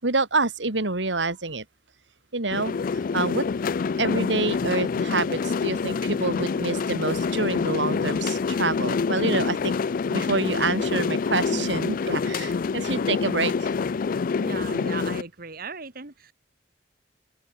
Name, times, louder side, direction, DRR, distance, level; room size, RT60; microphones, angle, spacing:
voice 1, 0.0-1.6 2.3-2.8 3.1-3.4 4.0-9.7 10.1-13.7, right 3 dB, 90° right, 2.7 m, -27 dB
sound 1, 2.5-15.2, left 5 dB, 50° left, 0.4 m, -26 dB
voice 2, 11.5-11.8 14.4-16.3, right 4 dB, 55° right, 2.3 m, -37 dB
open air
head